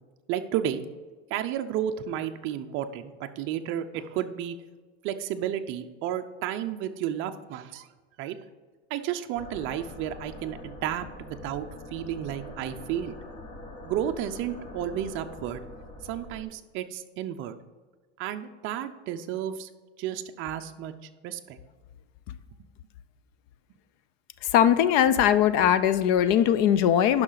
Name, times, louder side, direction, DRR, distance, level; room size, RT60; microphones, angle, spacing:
voice 1, 0.3-0.8 1.3-4.6 5.0-7.9 8.2-8.3 8.9-13.1 13.8-15.7 16.1-17.6 18.2-19.7 20.0-20.9 21.2-21.6, right 10 dB, 35° right, 7 dB, 0.6 m, -32 dB
sound 1, 9.3-16.4, left 1 dB, 25° left, 1.1 m, -44 dB
voice 2, 24.4-27.2, left 9 dB, 45° left, 14 dB, 0.4 m, -20 dB
10.5 x 5.7 x 3.9 m, 1.4 s
supercardioid pair, 155°, 34 cm